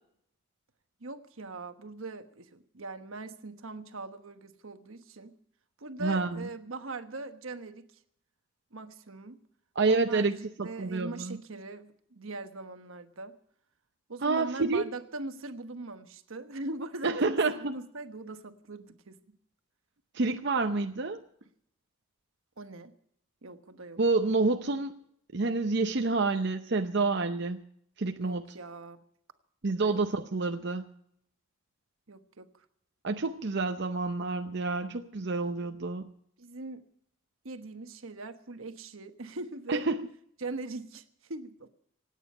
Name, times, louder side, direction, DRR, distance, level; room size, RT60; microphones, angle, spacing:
voice 1, 1.0-5.3 5.8-7.9 8.7-9.4 9.8-10.3 10.6-13.4 14.1-19.2 22.6-22.9 23.4-24.0 28.2-29.0 29.7-30.0 32.1-32.5 36.4-36.8 37.4-39.9 40.4-41.7, right 2 dB, 80° right, 9 dB, 1.2 m, -41 dB
voice 2, 6.0-6.4 9.8-11.4 14.2-14.9 17.0-17.6 20.1-21.2 24.0-24.9 25.3-27.6 28.0-28.4 29.6-30.8 33.0-36.1 39.7-40.1, right 3 dB, 55° right, 6 dB, 0.7 m, -28 dB
25.5 x 9.2 x 5.5 m, 0.69 s
head